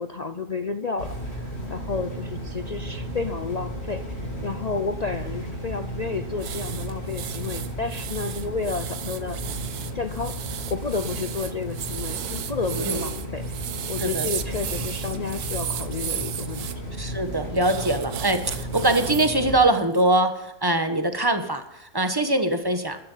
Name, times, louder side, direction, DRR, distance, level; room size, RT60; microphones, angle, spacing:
voice 1, 0.0-9.4 9.9-13.4 13.9-16.7, left 4 dB, 70° left, 8 dB, 0.3 m, -31 dB
sound 1, 1.0-19.6, equal, 40° left, 3.3 m, -34 dB
sound 2, 6.4-16.7 17.6-19.4 19.7-20.0, right 9 dB, 80° right, 1.4 m, -34 dB
voice 2, 17.0-23.0, right 2 dB, 15° right, 8 dB, 1.1 m, -23 dB
13.0 x 11.0 x 5.6 m, 0.89 s
omnidirectional pair, 1.6 m